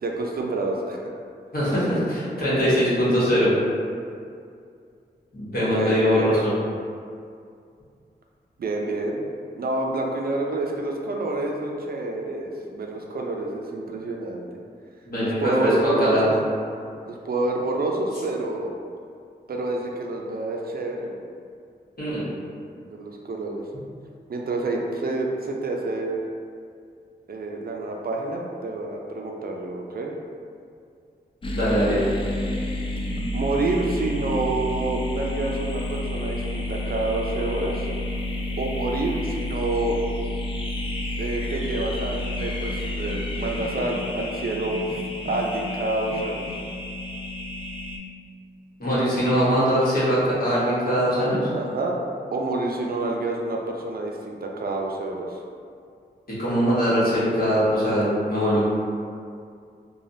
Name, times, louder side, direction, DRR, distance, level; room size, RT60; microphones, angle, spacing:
voice 1, 0.0-1.1 5.7-6.4 8.6-9.2 9.6-14.4 15.2-16.3 17.1-18.7 19.5-21.2 22.9-23.6 24.3-26.2 27.3-30.1 33.3-37.9 38.6-40.0 41.2-44.8 45.2-46.6 51.5-52.0 52.3-55.4, right 2 dB, 60° right, 0 dB, 0.4 m, -28 dB
voice 2, 1.5-3.6 5.3-6.5 15.1-16.3 22.0-22.3 31.5-32.1 48.8-51.5 56.3-58.6, equal, 55° left, -10 dB, 1.2 m, -22 dB
sound 1, 31.4-48.0, left 1 dB, 30° left, 0.4 m, -30 dB
3.2 x 2.2 x 2.6 m, 2.3 s
wide cardioid pair, 75°, 18 cm